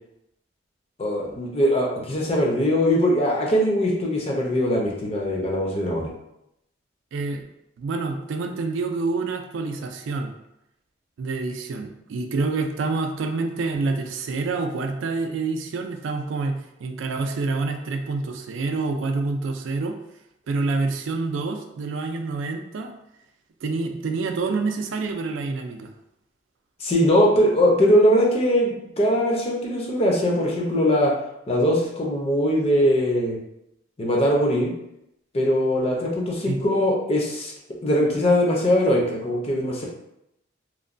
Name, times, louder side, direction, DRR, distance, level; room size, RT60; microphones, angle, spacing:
voice 1, 1.0-6.1 26.8-31.1 31.5-33.4 34.0-34.7 35.3-37.5 37.8-39.8, equal, 30° left, -2 dB, 0.5 m, -21 dB
voice 2, 7.1-7.4 7.8-10.3 11.2-20.0 20.5-22.9 23.6-25.9 36.5-36.6, right 3 dB, 80° right, 5 dB, 0.3 m, -27 dB
3.0 x 2.1 x 2.5 m, 0.83 s
head